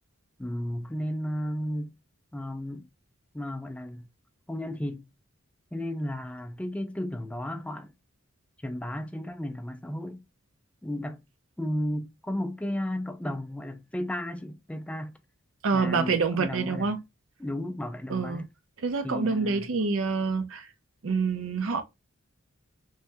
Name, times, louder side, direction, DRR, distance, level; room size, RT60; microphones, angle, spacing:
voice 1, 0.4-1.9 2.3-2.9 3.3-4.1 4.5-5.1 5.7-7.9 8.6-10.2 10.8-11.2 11.6-15.2 15.7-16.9 17.4-18.5 19.0-19.7, left 1 dB, 5° left, 0.3 m, -34 dB
voice 2, 15.6-17.0 18.1-18.4 18.8-20.7 21.0-21.8, right 4 dB, 65° right, 0.6 m, -27 dB
3.3 x 2.2 x 2.6 m
head